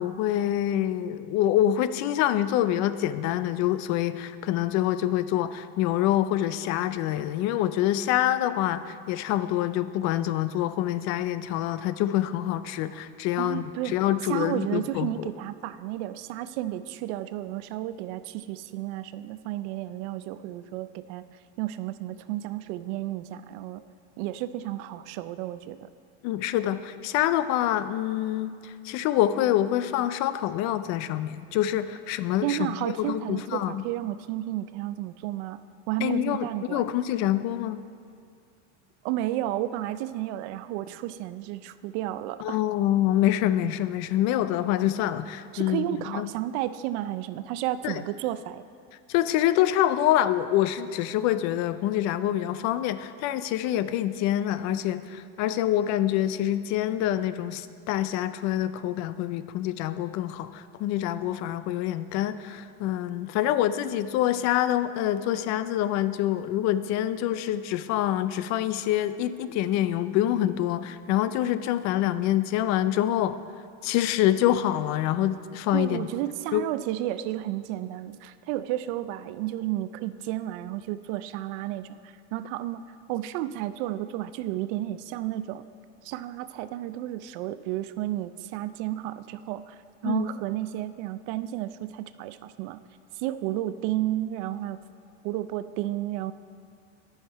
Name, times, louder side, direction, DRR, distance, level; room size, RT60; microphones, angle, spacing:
voice 1, 0.0-15.3 26.2-33.8 36.0-37.8 42.4-46.3 47.8-48.0 49.1-73.4 73.8-76.1 76.5-76.6 90.0-90.3, left 12 dB, 55° left, 13 dB, 0.4 m, -26 dB
voice 2, 13.4-14.0 14.3-21.2 21.6-23.8 24.2-25.9 32.4-35.6 35.9-36.9 39.0-42.6 45.5-48.6 75.7-82.8 83.1-85.6 86.0-89.8 90.0-92.8 93.2-94.8 95.2-96.3, right 14 dB, 75° right, 14 dB, 0.5 m, -32 dB
12.5 x 5.8 x 4.5 m, 2.3 s
supercardioid pair, 135°, 34 cm